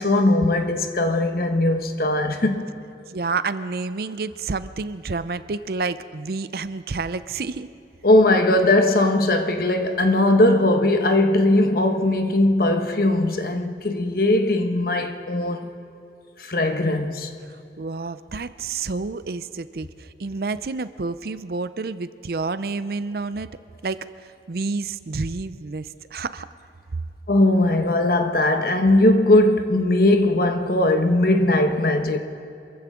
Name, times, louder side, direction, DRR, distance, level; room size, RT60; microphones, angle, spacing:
voice 1, 0.0-2.6 8.0-15.7 16.4-17.3 27.3-32.2, left 1 dB, 55° left, 1.2 m, -19 dB
voice 2, 3.1-7.7 17.8-23.5 23.8-26.5, right 4 dB, 55° right, 0.5 m, -29 dB
26.0 x 15.0 x 3.7 m
head